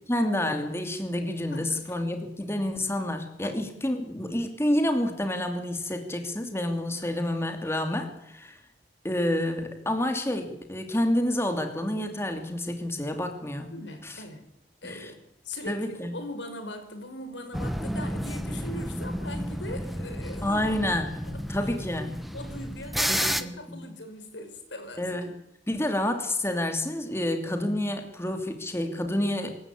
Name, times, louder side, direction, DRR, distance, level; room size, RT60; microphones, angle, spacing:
voice 1, 0.1-8.6 9.0-13.7 14.0-14.2 14.8-15.1 15.7-16.1 20.4-22.2 23.1-23.5 25.0-25.4 25.7-29.6, left 1 dB, 15° left, 6 dB, 2.8 m, -29 dB
voice 2, 1.5-1.9 3.4-3.7 13.7-14.5 14.8-20.8 21.3-21.4 22.3-25.0, left 1 dB, 90° left, 7 dB, 5.4 m, -40 dB
sound 1, 17.5-23.4, equal, ahead, 1.2 m, -31 dB
26.0 x 14.5 x 8.5 m, 0.81 s
head